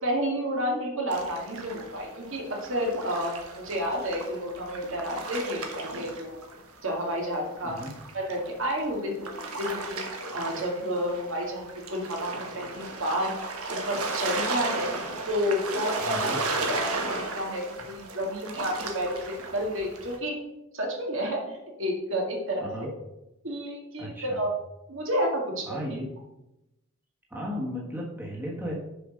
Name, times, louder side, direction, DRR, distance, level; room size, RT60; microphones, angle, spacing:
voice 1, 0.0-6.4 6.8-7.7 8.1-10.0 10.3-13.3 13.7-14.9 15.3-16.3 16.7-19.2 19.5-20.4 20.7-21.4 21.8-22.9 23.4-24.5 24.9-25.8, equal, 65° right, 0 dB, 2.0 m, -30 dB
sound 1, 1.1-6.8 7.1-20.2, right 3 dB, 80° right, 1.4 m, -35 dB
voice 2, 16.0-16.4 22.6-22.9 24.0-24.4 25.6-26.1 27.3-28.7, equal, 10° right, -3 dB, 1.4 m, -35 dB
6.8 x 5.1 x 6.3 m, 0.92 s
head